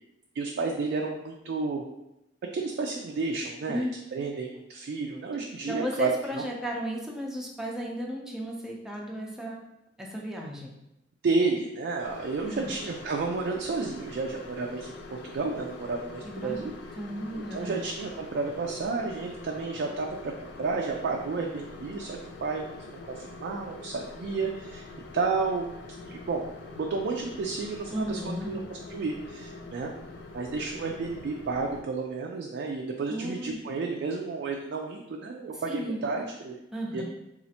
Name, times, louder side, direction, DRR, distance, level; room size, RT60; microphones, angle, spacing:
voice 1, 0.3-1.8 2.5-3.9 4.1-6.4 11.2-16.7 17.3-20.3 20.6-24.9 25.1-25.7 26.0-26.5 26.8-29.9 30.3-36.6 36.9-37.0, right 4 dB, 60° right, 1 dB, 0.3 m, -31 dB
voice 2, 5.7-9.6 10.0-10.7 12.5-12.7 16.2-16.6 17.0-17.8 27.9-28.5 33.1-33.6 35.7-36.0 36.7-37.0, equal, 5° right, -2 dB, 0.5 m, -34 dB
sound 1, 12.0-31.8, left 3 dB, 65° left, 0.4 m, -44 dB
4.2 x 2.4 x 2.7 m, 0.88 s
head